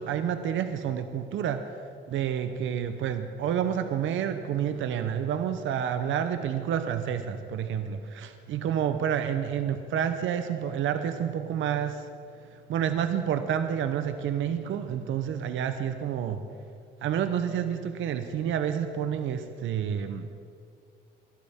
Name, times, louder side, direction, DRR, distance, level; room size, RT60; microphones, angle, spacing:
voice 1, 0.0-1.6 2.1-12.1 12.5-16.4 17.0-20.3, right 9 dB, 75° right, 9 dB, 0.8 m, -29 dB
21.0 x 12.0 x 3.6 m, 2.3 s
cardioid pair, 90°, 20 cm